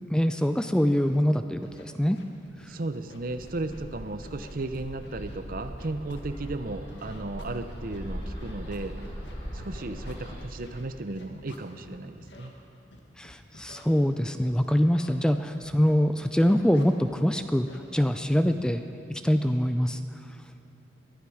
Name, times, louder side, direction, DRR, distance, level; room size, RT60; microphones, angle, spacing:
voice 1, 0.0-2.2 13.2-18.8 19.1-20.0, equal, 5° left, 8 dB, 0.4 m, -24 dB
Scratching (performance technique), 1.0-1.2 1.6-1.8 2.2-2.6 2.9-3.9 4.2-6.6 6.9-11.9 12.2-12.5 12.9-13.8 14.4-14.5 14.8-15.1 15.5-17.2 17.5-17.8 18.3-18.5, left 2 dB, 75° left, 1.8 m, -51 dB
voice 2, 2.7-9.0 9.5-12.5 18.4-18.6, right 2 dB, 50° right, 10 dB, 0.7 m, -35 dB
Bird, 3.3-10.4, equal, 35° left, 4.1 m, -40 dB
21.0 x 11.5 x 4.9 m, 2.9 s
head